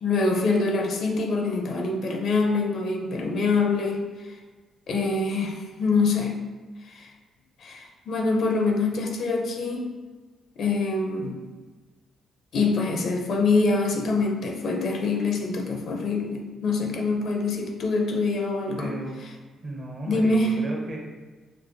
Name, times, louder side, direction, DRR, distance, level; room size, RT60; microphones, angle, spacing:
voice 1, 0.0-4.0 4.9-6.4 6.9-7.1 7.6-9.9 10.6-11.4 12.5-19.0 20.1-20.6, left 3 dB, 60° left, 2 dB, 0.5 m, -25 dB
voice 2, 18.8-19.2 19.6-21.0, right 1 dB, 45° right, -1 dB, 0.8 m, -35 dB
4.4 x 2.1 x 2.5 m, 1.4 s
cardioid pair, 90°, 0 cm